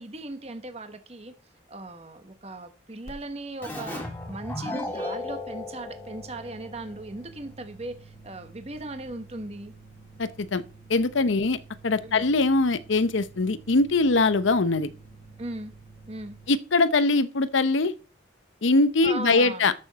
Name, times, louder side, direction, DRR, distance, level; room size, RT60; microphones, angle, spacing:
voice 1, 0.0-1.3 1.7-9.7 12.0-12.2 15.4-15.7 16.1-16.4 19.0-19.7, right 2 dB, 30° right, 1.1 m, -38 dB
sound 1, 3.1-3.2 3.4-16.5, right 3 dB, 35° left, 1.6 m, -50 dB
Keyboard (musical), 3.6-7.0, left 2 dB, 10° left, 2.0 m, -35 dB
voice 2, 10.2-10.6 10.9-11.6 11.8-14.9 16.5-17.9 18.6-19.7, left 3 dB, 85° left, 0.7 m, -22 dB
13.0 x 6.4 x 4.0 m
head